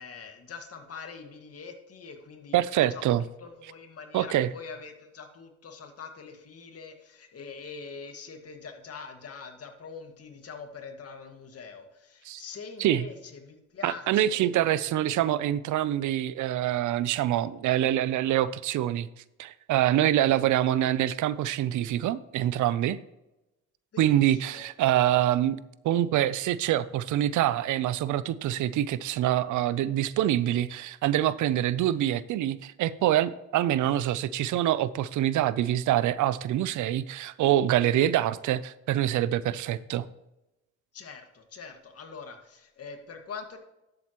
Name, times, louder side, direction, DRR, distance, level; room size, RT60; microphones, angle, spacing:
voice 1, 0.0-14.5 20.3-20.4 23.9-24.6 40.9-43.6, left 5 dB, 50° left, 5 dB, 1.9 m, -44 dB
voice 2, 2.5-3.2 4.1-4.5 12.3-12.4 12.8-13.1 13.8-19.1 19.4-23.0 24.0-25.6 25.8-40.0, right 12 dB, 75° right, 17 dB, 0.6 m, -25 dB
11.5 x 7.9 x 3.0 m, 0.93 s
cardioid pair, 90°, 30 cm